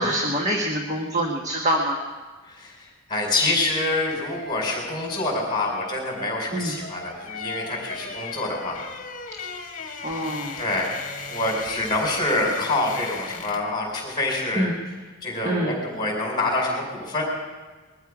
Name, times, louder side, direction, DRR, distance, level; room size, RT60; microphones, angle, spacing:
voice 1, 0.0-2.0 6.5-6.7 10.0-10.6 14.5-14.7 15.4-15.7, right 1 dB, 35° right, 0 dB, 1.4 m, -25 dB
voice 2, 2.5-8.8 10.6-10.9 11.3-14.7 15.2-17.2, left 2 dB, 20° left, -1 dB, 4.6 m, -26 dB
sound 1, 3.8-13.8 14.1-14.3, left 4 dB, 40° left, 1.7 m, -38 dB
21.5 x 13.5 x 4.9 m, 1.4 s
head